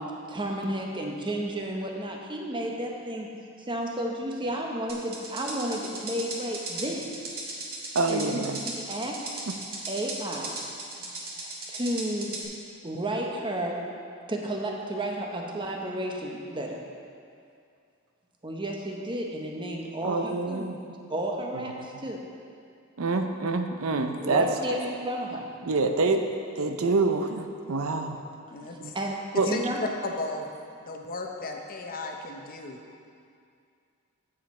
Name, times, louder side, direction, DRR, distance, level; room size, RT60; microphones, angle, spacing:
voice 1, 0.0-3.3 3.6-7.1 8.1-9.3 9.9-10.6 11.3-12.4 12.8-13.9 14.3-16.8 18.4-20.7 21.1-22.2 24.2-25.5 28.9-29.2 29.4-29.8, right 1 dB, 25° right, 0 dB, 0.9 m, -32 dB
sound 1, 4.9-12.4, right 3 dB, 45° right, 1.5 m, -36 dB
voice 2, 7.9-8.6 20.0-20.8 21.5-21.6 23.0-24.5 25.6-26.3 26.6-28.2 28.8-28.9 29.3-29.5, right 3 dB, 75° right, 6 dB, 0.6 m, -26 dB
voice 3, 28.5-28.9 29.5-29.6 30.0-30.5 30.8-32.8, left 3 dB, 45° left, 2 dB, 0.8 m, -35 dB
8.8 x 7.4 x 4.3 m, 2.4 s
head